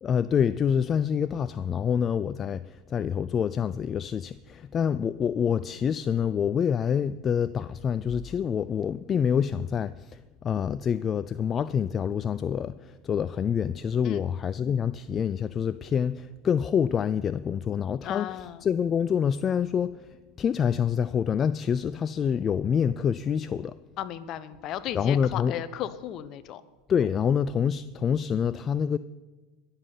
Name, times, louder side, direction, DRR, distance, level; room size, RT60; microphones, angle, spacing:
voice 1, 0.0-18.3 18.6-20.1 20.4-23.7 24.9-25.5 26.9-29.0, left 7 dB, 35° left, 0.4 m, -26 dB
voice 2, 18.0-18.6 24.0-26.6, left 11 dB, 50° left, 0.9 m, -35 dB
20.0 x 7.2 x 5.7 m
hypercardioid pair, 85°, 0 cm